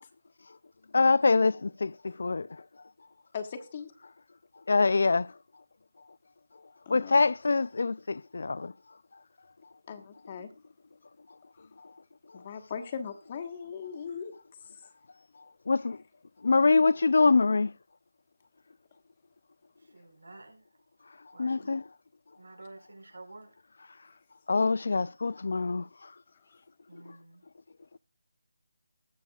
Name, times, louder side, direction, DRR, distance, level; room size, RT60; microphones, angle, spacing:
voice 1, 0.9-2.5 4.7-5.3 6.9-8.7 15.7-16.0 16.4-17.7 21.4-21.8 24.5-25.9, left 3 dB, 60° left, 0.4 m, -24 dB
voice 2, 3.3-3.9 6.9-7.3 9.9-10.5 12.3-14.3, left 6 dB, 30° left, 1.3 m, -39 dB
voice 3, 19.8-20.6 21.3-21.7 22.4-23.5 26.9-27.5, right 2 dB, 90° right, 4.9 m, -50 dB
20.0 x 7.0 x 2.4 m
figure-of-eight pair, 165°, 0 cm